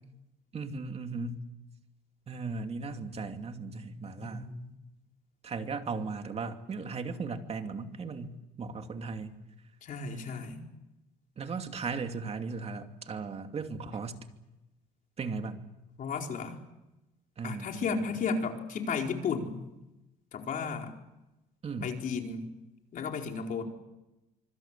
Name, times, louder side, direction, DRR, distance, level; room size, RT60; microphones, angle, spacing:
voice 1, 0.5-1.5 2.3-4.5 5.4-9.4 10.1-10.4 11.4-14.3 15.2-15.6 17.4-18.2 21.6-22.0, right 4 dB, 35° right, 6 dB, 2.7 m, -37 dB
voice 2, 4.2-4.7 9.8-10.6 16.0-16.6 17.4-19.6 20.3-20.9 21.8-22.5 22.9-23.6, left 5 dB, 55° left, 2 dB, 4.4 m, -34 dB
25.5 x 25.0 x 7.5 m, 0.98 s
cardioid pair, 110°, 17 cm